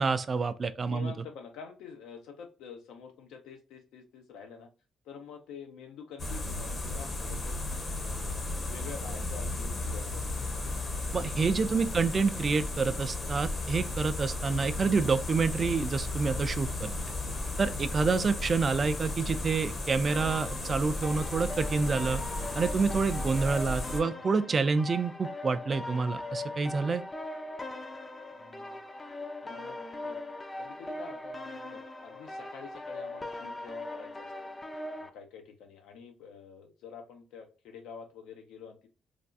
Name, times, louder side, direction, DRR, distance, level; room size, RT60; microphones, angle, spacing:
voice 1, 0.0-1.1 11.1-16.9 17.6-22.2 22.6-27.0, right 4 dB, 40° right, 0.3 m, -28 dB
voice 2, 0.8-4.7 5.0-7.6 8.0-10.6 11.1-11.3 11.7-12.1 28.3-28.8 29.4-30.2 30.6-34.3 34.9-38.9, left 6 dB, 90° left, 0.7 m, -48 dB
sound 1, 6.2-24.0, left 2 dB, 40° left, 0.8 m, -35 dB
sound 2, 20.1-35.1, left 2 dB, 25° left, 0.4 m, -40 dB
3.3 x 2.3 x 2.5 m
cardioid pair, 90°, 0 cm